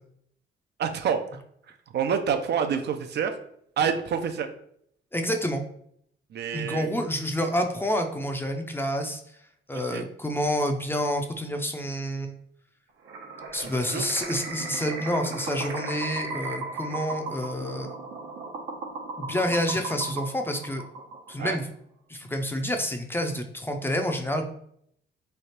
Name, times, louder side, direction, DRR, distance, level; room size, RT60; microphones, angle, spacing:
voice 1, 0.8-1.4 1.7-3.4 3.8-4.5 6.3-6.9 9.7-10.0 13.6-14.0 21.4-21.6, right 7 dB, 60° right, 7 dB, 0.5 m, -28 dB
voice 2, 5.1-5.7 6.5-9.2 9.7-12.4 13.5-18.0 19.2-20.8 21.3-21.7 22.1-24.5, equal, 10° left, 4 dB, 0.5 m, -28 dB
sound 1, 13.1-21.5, right 3 dB, 90° right, 1.0 m, -36 dB
3.3 x 2.4 x 4.2 m, 0.68 s
cardioid pair, 90°, 20 cm